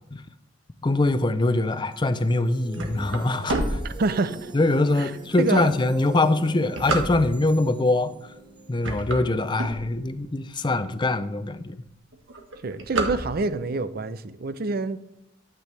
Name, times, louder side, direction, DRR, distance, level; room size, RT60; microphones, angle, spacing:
voice 1, 0.8-3.8 4.5-8.1 8.7-11.8, left 2 dB, 25° left, 0.5 m, -23 dB
sound 1, 1.5-10.7, right 1 dB, 25° right, 1.1 m, -43 dB
sound 2, 2.7-4.6 5.1-5.2 5.9-7.6 8.2-8.5 8.7-10.3 10.8-10.9 11.1-11.2 11.5-11.9 12.1-13.7, right 2 dB, 80° right, 1.5 m, -29 dB
voice 2, 3.8-4.5 5.0-5.1 5.4-5.7 12.6-15.0, right 3 dB, 50° right, 0.6 m, -27 dB
12.0 x 8.4 x 3.3 m
head